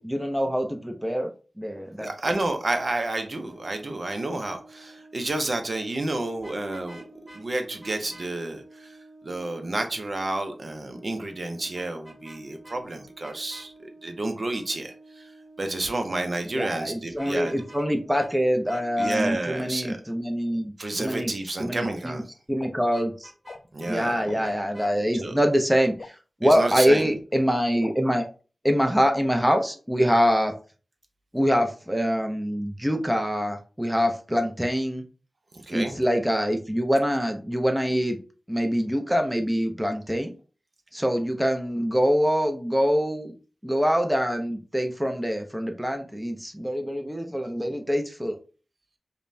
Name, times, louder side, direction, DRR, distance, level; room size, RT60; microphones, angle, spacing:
voice 1, 0.0-2.1 16.5-20.7 21.0-21.3 21.6-22.2 22.5-23.3 23.9-26.2 26.4-28.2 28.6-30.5 31.3-35.0 35.7-38.2 38.5-40.3 40.9-43.3 43.6-48.4, equal, 5° right, 5 dB, 0.5 m, -24 dB
voice 2, 2.0-7.0 7.3-9.0 9.2-15.3 15.6-17.5 19.0-20.0 20.8-22.2 23.7-24.5 25.2-25.4 26.4-27.1 35.5-35.9, right 2 dB, 55° right, 5 dB, 0.6 m, -30 dB
Brass instrument, 3.0-19.4, right 2 dB, 15° left, 0.9 m, -51 dB
Vehicle horn car horn honking, 6.4-7.4 7.8-8.3 11.7-12.4 12.6-12.8 13.2-13.7 17.1-17.9 18.1-18.3 18.7-19.2 22.9-24.0 24.4-24.9, right 1 dB, 35° right, 1.5 m, -48 dB
sound 1, 21.8-21.9 22.6-22.7 23.5-23.6 24.3-24.4 25.2-25.3 26.0-26.1 26.9-27.0 27.8-27.9 28.8-28.9, left 3 dB, 75° left, 0.3 m, -39 dB
5.2 x 2.1 x 2.6 m, 0.37 s
wide cardioid pair, 85°, 0 cm